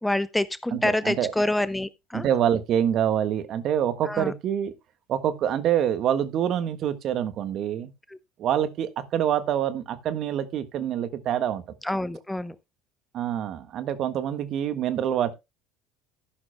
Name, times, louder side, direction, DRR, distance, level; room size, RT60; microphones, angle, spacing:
voice 1, 0.0-2.3 4.1-4.3 8.1-8.2 11.8-12.5, left 1 dB, 5° left, 0.8 m, -27 dB
voice 2, 0.7-1.3 2.1-4.7 5.1-7.9 8.4-11.6 13.1-15.3, right 10 dB, 50° right, 1.5 m, -26 dB
13.5 x 11.5 x 2.2 m
hypercardioid pair, 70°, 0 cm